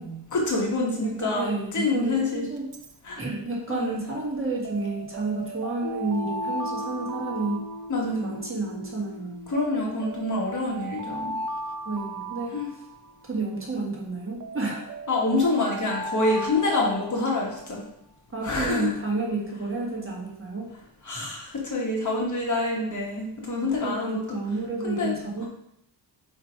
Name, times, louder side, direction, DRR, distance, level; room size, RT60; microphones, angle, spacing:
voice 1, 0.3-2.5 3.0-3.2 3.7-4.0 7.9-8.4 9.5-11.3 12.5-12.7 15.1-17.8 18.4-18.9 21.0-24.4 24.8-25.1, left 2 dB, 45° left, -2 dB, 1.6 m, -26 dB
voice 2, 1.0-2.6 3.2-7.6 8.2-9.5 11.8-12.6 13.2-14.9 18.3-20.7 23.8-25.5, right 3 dB, 30° right, -3 dB, 1.5 m, -30 dB
Alarm, 2.6-2.9 4.6-8.4 9.5-13.3 14.4-17.6, right 2 dB, 50° right, 0.5 m, -36 dB
Piano, 5.8-13.1, left 1 dB, 70° left, 1.3 m, -41 dB
4.9 x 4.4 x 4.6 m, 0.74 s
wide cardioid pair, 125°, 41 cm